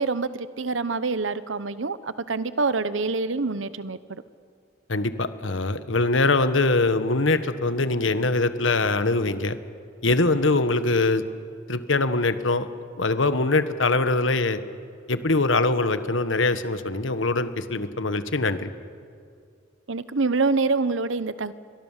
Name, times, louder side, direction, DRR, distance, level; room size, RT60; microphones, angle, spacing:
voice 1, 0.0-4.2 19.9-21.5, right 3 dB, 70° right, 15 dB, 1.0 m, -26 dB
voice 2, 4.9-9.6 10.0-11.2 11.7-12.7 13.0-14.6 15.1-18.7, left 3 dB, 70° left, 11 dB, 1.4 m, -23 dB
29.5 x 23.5 x 7.4 m, 2.3 s
head